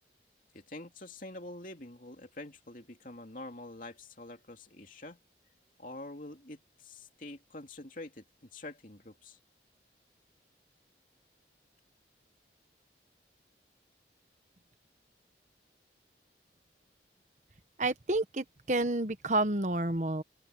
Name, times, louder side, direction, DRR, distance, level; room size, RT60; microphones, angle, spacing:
voice 1, 0.5-5.2 5.8-9.4, left 2 dB, 45° left, 2.9 m, -46 dB
voice 2, 17.8-20.2, right 2 dB, 40° right, 1.2 m, -30 dB
open air
head